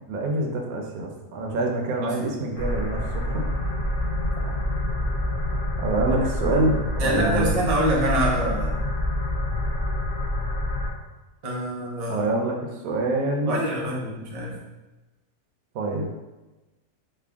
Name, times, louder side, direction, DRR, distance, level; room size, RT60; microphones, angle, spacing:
voice 1, 0.1-3.6 4.5-4.6 5.8-7.5 12.1-13.9 15.7-16.1, right 2 dB, 75° right, 1 dB, 1.0 m, -26 dB
sound 1, 2.6-10.9, left 1 dB, 55° left, 0.6 m, -27 dB
voice 2, 7.0-8.7 11.4-12.2 13.5-14.6, right 1 dB, 60° right, -3 dB, 0.4 m, -25 dB
3.3 x 2.1 x 3.4 m, 1.1 s
omnidirectional pair, 1.6 m